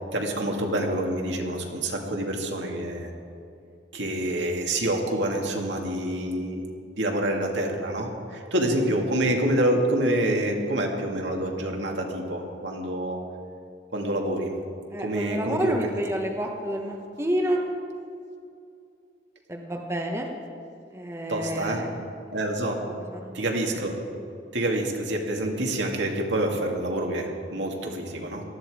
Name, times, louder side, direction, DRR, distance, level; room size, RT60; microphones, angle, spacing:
voice 1, 0.1-3.1 3.9-6.7 7.0-13.2 13.9-14.5 15.0-15.8 21.3-21.8 22.3-22.8 23.3-23.9 24.5-28.4, right 1 dB, 75° right, 1 dB, 2.2 m, -27 dB
voice 2, 14.9-17.6 19.5-20.3 20.9-22.0 23.1-23.3, equal, 15° right, 1 dB, 1.1 m, -29 dB
18.5 x 13.5 x 4.9 m, 2.5 s
head